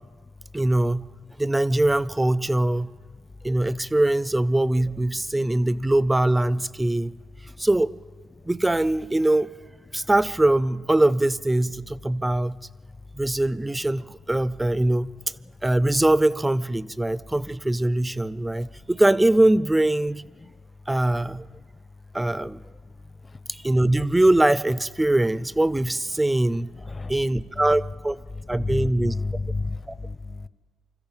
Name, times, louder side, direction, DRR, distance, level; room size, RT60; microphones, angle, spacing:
voice 1, 0.5-1.1 1.4-2.9 3.4-7.1 7.6-7.9 8.4-9.5 9.9-12.6 13.2-15.1 15.6-20.2 20.9-21.5 22.1-22.6 23.5-26.7 27.1-28.2 28.5-29.1 29.9-30.0, right 1 dB, 10° right, 17 dB, 0.6 m, -22 dB
voice 2, 26.7-27.6 28.3-30.5, left 3 dB, 30° left, 16 dB, 0.9 m, -31 dB
26.0 x 14.0 x 9.0 m, 1.4 s
cardioid pair, 90°, 0 cm